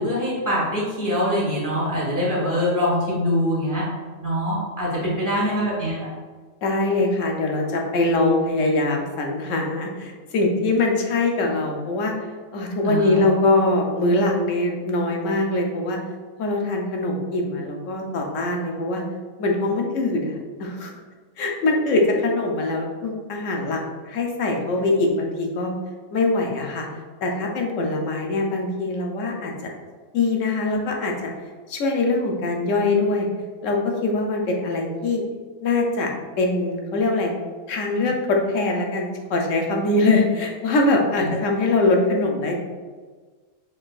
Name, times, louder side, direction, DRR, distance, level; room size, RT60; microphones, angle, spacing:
voice 1, 0.0-3.8 4.2-6.0 12.8-13.2, equal, 15° right, -7 dB, 1.5 m, -23 dB
voice 2, 6.6-12.1 12.5-16.0 16.4-19.0 19.4-20.9 21.4-23.8 24.1-25.7 26.1-26.9 27.2-29.5 30.1-31.3 31.7-33.3 33.6-35.2 35.6-36.1 36.4-37.3 37.7-42.6, left 2 dB, 75° left, 1 dB, 1.1 m, -22 dB
4.5 x 3.9 x 2.4 m, 1.4 s
omnidirectional pair, 1.4 m